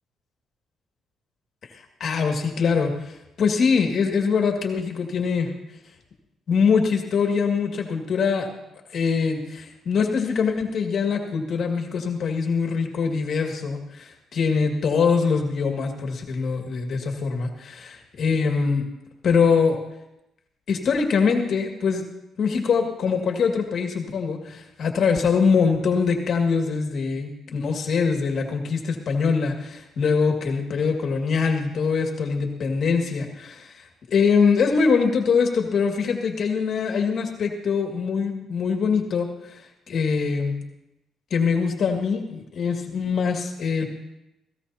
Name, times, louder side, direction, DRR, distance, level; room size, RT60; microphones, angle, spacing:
voice 1, 2.0-5.5 6.5-8.5 8.9-18.8 19.2-19.8 20.7-22.0 22.4-39.6 39.9-40.6 41.3-43.9, left 5 dB, 60° left, 3 dB, 2.1 m, -23 dB
18.5 x 16.5 x 2.9 m, 0.90 s
cardioid pair, 90°, 0 cm